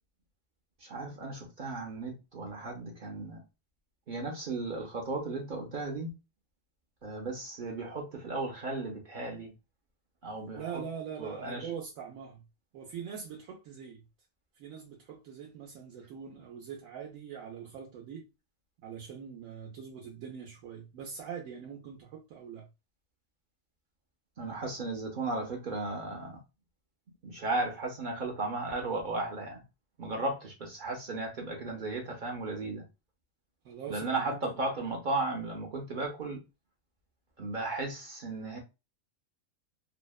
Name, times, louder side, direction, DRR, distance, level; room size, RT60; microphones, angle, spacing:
voice 1, 0.8-3.4 4.1-6.1 7.0-9.5 10.2-10.8 11.2-11.7 24.4-26.4 27.2-29.6 30.0-32.8 33.9-36.4 37.4-38.6, right 2 dB, 55° right, 0.5 m, -35 dB
voice 2, 10.6-12.4 12.7-14.0 14.6-18.3 18.8-22.7 33.6-34.6, right 7 dB, 80° right, 1.0 m, -43 dB
2.7 x 2.1 x 2.3 m
omnidirectional pair, 1.4 m